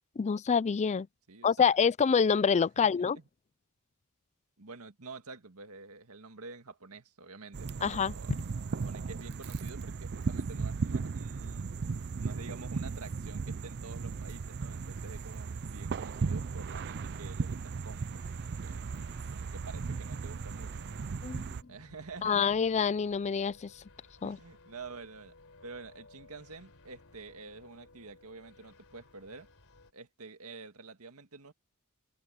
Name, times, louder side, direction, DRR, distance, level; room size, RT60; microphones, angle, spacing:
voice 1, 0.2-1.1 1.4-3.2 7.8-8.1 21.2-21.5 22.2-23.7 24.2-24.4, left 6 dB, 30° left, 0.4 m, -26 dB
voice 2, 1.3-1.8 2.8-3.3 4.6-8.4 8.7-11.8 12.2-18.1 18.3-18.8 19.3-21.0 21.7-22.6 24.2-25.3 25.6-29.5 29.9-31.5, right 3 dB, 85° right, 1.9 m, -48 dB
sound 1, 7.5-21.6, right 4 dB, 50° right, 0.5 m, -36 dB
sound 2, 18.1-29.9, left 2 dB, 70° left, 3.9 m, -58 dB
head